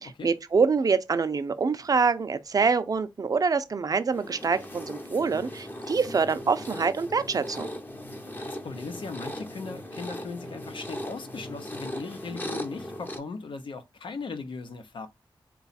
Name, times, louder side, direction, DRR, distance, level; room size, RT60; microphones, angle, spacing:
voice 1, 0.2-7.7, right 5 dB, 45° right, 0.5 m, -25 dB
sound 1, 4.1-13.2, left 1 dB, 20° left, 0.7 m, -38 dB
voice 2, 8.3-15.1, left 4 dB, 75° left, 0.7 m, -38 dB
4.0 x 2.3 x 4.1 m
wide cardioid pair, 115°, 9 cm